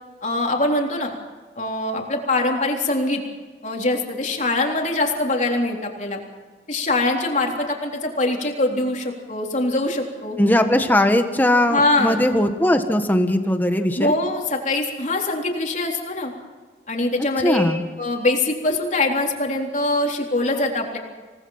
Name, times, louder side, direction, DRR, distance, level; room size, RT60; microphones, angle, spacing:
voice 1, 0.2-1.2 1.6-3.2 3.6-6.2 6.7-10.4 11.7-12.3 14.0-16.3 16.9-17.6 18.0-21.0, left 2 dB, 45° left, 1 dB, 3.7 m, -23 dB
voice 2, 10.4-14.1 17.4-17.8, left 1 dB, 10° left, 6 dB, 1.6 m, -19 dB
27.5 x 19.0 x 5.8 m, 1.4 s
head